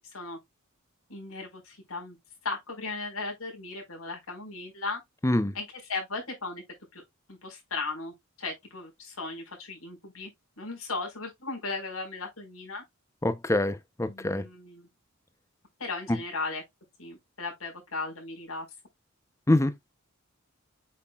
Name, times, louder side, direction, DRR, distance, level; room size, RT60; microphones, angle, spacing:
voice 1, 1.1-2.2 2.4-5.0 5.5-6.6 6.9-7.0 7.3-10.3 10.6-12.8 14.1-14.9 15.8-16.6 17.0-18.7, left 3 dB, 85° left, 4.6 m, -36 dB
voice 2, 5.2-5.5 13.2-14.4 19.5-19.9, left 1 dB, 15° left, 0.6 m, -25 dB
8.5 x 5.7 x 2.3 m
head